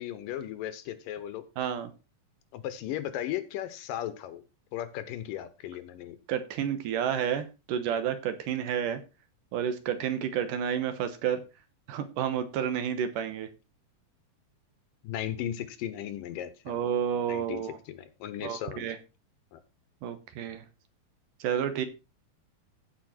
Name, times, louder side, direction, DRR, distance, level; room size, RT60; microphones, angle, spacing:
voice 1, 0.0-1.4 2.5-4.4 4.7-6.2 15.0-16.9 17.3-17.6 17.9-18.9 19.5-19.6, left 11 dB, 75° left, 12 dB, 2.5 m, -36 dB
voice 2, 1.6-1.9 6.3-9.0 9.5-11.4 11.9-13.5 16.7-17.8 18.4-19.0 20.0-20.6 21.4-21.9, right 9 dB, 70° right, 10 dB, 2.5 m, -30 dB
15.5 x 5.2 x 4.3 m, 0.29 s
omnidirectional pair, 4.1 m